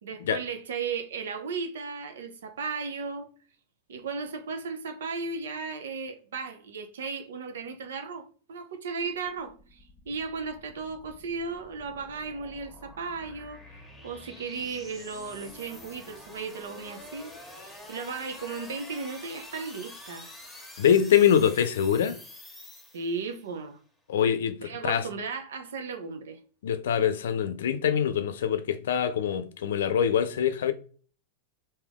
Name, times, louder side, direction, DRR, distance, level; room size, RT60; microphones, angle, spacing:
voice 1, 0.0-3.3 3.9-20.3 22.9-23.8 24.6-26.4, right 4 dB, 80° right, 0.8 m, -36 dB
sound 1, 9.0-23.5, left 2 dB, 10° left, 1.3 m, -48 dB
voice 2, 20.8-22.2 24.1-25.0 26.6-30.7, left 8 dB, 80° left, 0.5 m, -24 dB
3.4 x 2.7 x 3.6 m
hypercardioid pair, 115°, 0 cm